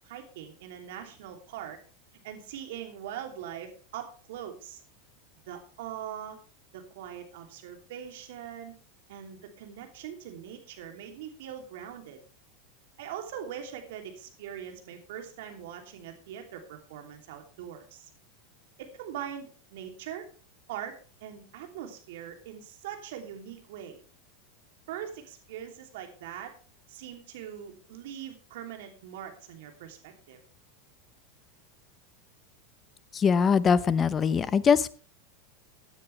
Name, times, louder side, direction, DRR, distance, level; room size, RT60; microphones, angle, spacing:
voice 1, 0.0-1.8 2.2-4.8 5.5-6.4 6.7-8.7 9.1-12.2 13.0-18.1 18.8-20.2 20.7-20.9 21.2-24.0 24.9-26.5 26.9-30.4, right 9 dB, 70° right, 4 dB, 3.0 m, -41 dB
voice 2, 33.1-34.9, left 6 dB, 30° left, 16 dB, 0.9 m, -22 dB
16.5 x 9.8 x 3.4 m, 0.39 s
hypercardioid pair, 95°, 0 cm